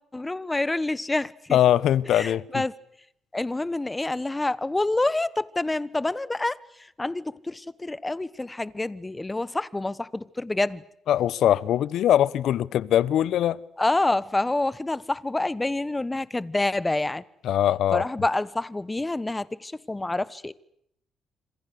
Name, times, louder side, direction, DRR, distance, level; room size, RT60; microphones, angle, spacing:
voice 1, 0.1-1.6 2.1-2.7 3.3-6.6 7.0-10.8 13.8-17.2 17.9-20.5, left 2 dB, 15° left, 1.2 m, -27 dB
voice 2, 1.5-2.6 11.1-13.6 17.4-18.1, left 11 dB, 75° left, 0.9 m, -22 dB
27.0 x 26.5 x 6.6 m
cardioid pair, 90°, 0 cm